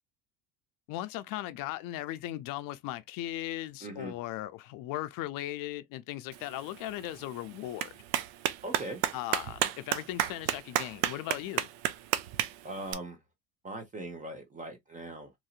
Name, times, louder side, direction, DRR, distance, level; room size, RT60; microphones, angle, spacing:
voice 1, 0.9-7.9 9.1-11.7, left 14 dB, 60° left, 0.5 m, -37 dB
voice 2, 3.8-4.1 8.6-9.0 12.6-13.2 13.6-15.3, right 2 dB, 20° right, 0.8 m, -40 dB
Clapping, 6.3-12.9, right 12 dB, 70° right, 0.5 m, -34 dB
3.0 x 2.7 x 2.4 m
supercardioid pair, 115°, 37 cm